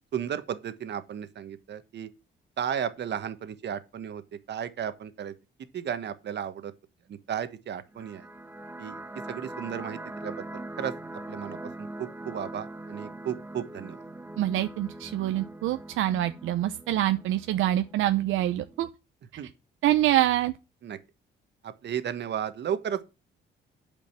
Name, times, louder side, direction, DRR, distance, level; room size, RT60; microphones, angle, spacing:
voice 1, 0.1-2.1 2.6-4.2 4.5-5.3 5.7-6.7 7.1-8.3 8.8-9.0 9.3-10.9 11.3-14.0 19.4-19.5 20.8-21.0 21.6-23.0, right 9 dB, 60° right, 1.4 m, -34 dB
sound 1, 7.9-18.9, right 2 dB, 10° right, 0.8 m, -42 dB
voice 2, 14.4-18.9 19.8-20.5, right 13 dB, 85° right, 0.7 m, -25 dB
8.8 x 5.2 x 7.4 m
cardioid pair, 90°, 20 cm